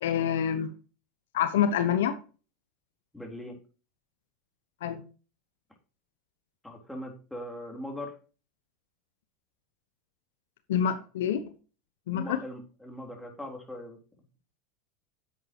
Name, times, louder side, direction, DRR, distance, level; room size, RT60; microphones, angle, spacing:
voice 1, 0.0-0.7 1.3-2.2 4.8-5.0 10.7-11.5 12.1-12.4, left 9 dB, 80° left, 10 dB, 1.0 m, -27 dB
voice 2, 3.1-3.6 6.6-8.2 12.1-14.0, left 1 dB, 5° left, 1 dB, 3.6 m, -40 dB
10.0 x 8.0 x 3.0 m, 0.35 s
hypercardioid pair, 95°, 0 cm